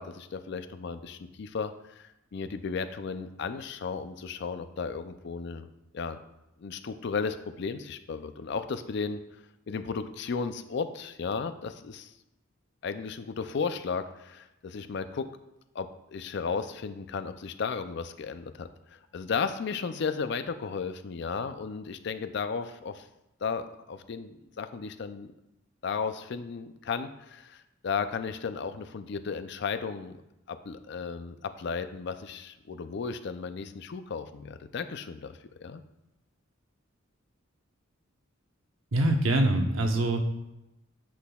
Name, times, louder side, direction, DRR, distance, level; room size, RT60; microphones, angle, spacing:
voice 1, 0.0-5.7 5.9-6.2 6.6-9.2 9.7-12.1 12.8-15.3 15.7-23.1 23.4-25.3 25.8-30.2 30.5-35.8, left 5 dB, 60° left, 11 dB, 0.4 m, -34 dB
voice 2, 38.9-40.2, right 1 dB, 90° right, 4 dB, 0.9 m, -24 dB
8.4 x 6.0 x 2.3 m, 0.92 s
head